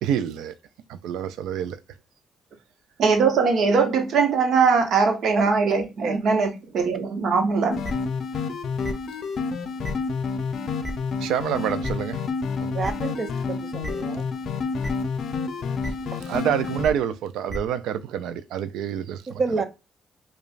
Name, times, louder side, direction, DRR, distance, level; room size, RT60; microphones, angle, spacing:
voice 1, 0.0-0.5 0.9-1.8 11.2-12.2 16.3-19.4, right 9 dB, 90° right, 0.3 m, -27 dB
voice 2, 3.0-7.8, right 5 dB, 65° right, 0.9 m, -21 dB
sound 1, 7.7-16.8, left 5 dB, 65° left, 0.5 m, -29 dB
sound 2, 7.8-7.9 8.8-8.9 9.8-9.9 10.8-10.9 11.8-11.9 12.8-12.9 13.8-13.9 14.8-14.9 15.8-15.9 16.8-16.9 17.5-17.6, equal, 20° right, 1.1 m, -31 dB
voice 3, 12.7-14.2 16.1-16.2 19.3-19.6, right 4 dB, 45° right, 0.6 m, -29 dB
5.0 x 2.3 x 2.4 m
cardioid pair, 90°, 0 cm